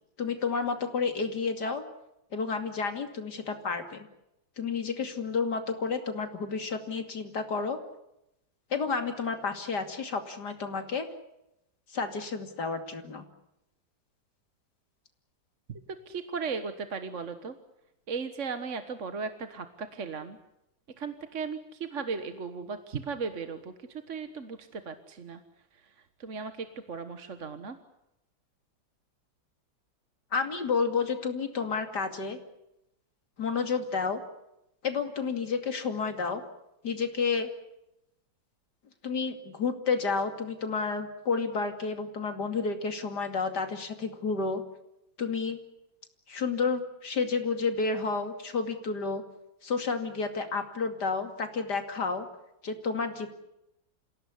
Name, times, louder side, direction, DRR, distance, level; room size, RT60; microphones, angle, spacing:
voice 1, 0.2-1.8 2.3-4.1 4.6-7.8 8.7-11.1 11.9-13.2 30.3-32.4 33.4-34.2 34.8-36.4 36.8-37.5 39.0-44.6 45.2-45.6 46.3-49.2 49.6-52.3 52.6-53.3, left 5 dB, 60° left, 7 dB, 3.0 m, -30 dB
voice 2, 16.1-17.5 18.1-20.4 21.0-25.4 26.2-27.8, right 5 dB, 45° right, 9 dB, 1.5 m, -36 dB
27.5 x 17.0 x 9.8 m, 0.87 s
omnidirectional pair, 2.1 m